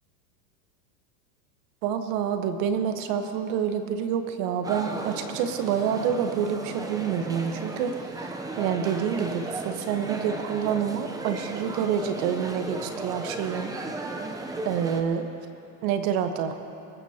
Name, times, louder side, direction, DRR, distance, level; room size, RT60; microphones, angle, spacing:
voice 1, 1.8-8.3 8.6-13.7 14.6-15.3 15.8-16.5, right 8 dB, 50° right, 7 dB, 1.3 m, -27 dB
sound 1, 4.6-15.0, right 2 dB, 10° right, 0.7 m, -35 dB
24.0 x 14.0 x 2.9 m, 2.7 s
hypercardioid pair, 120°, 49 cm